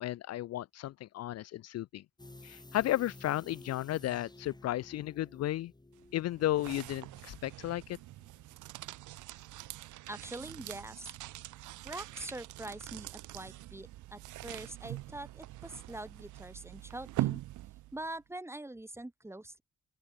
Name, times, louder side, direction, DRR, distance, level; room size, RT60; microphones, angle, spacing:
voice 1, 0.0-2.0 2.4-5.7 6.1-8.0, left 14 dB, 55° left, 0.4 m, -34 dB
sound 1, 2.2-9.0 9.3-9.4, left 2 dB, 15° left, 5.7 m, -55 dB
sound 2, 5.9-18.1, right 16 dB, 80° right, 0.7 m, -43 dB
voice 2, 10.1-11.2 11.8-17.4 17.9-19.6, right 1 dB, 10° right, 3.3 m, -44 dB
open air
cardioid pair, 90°, 30 cm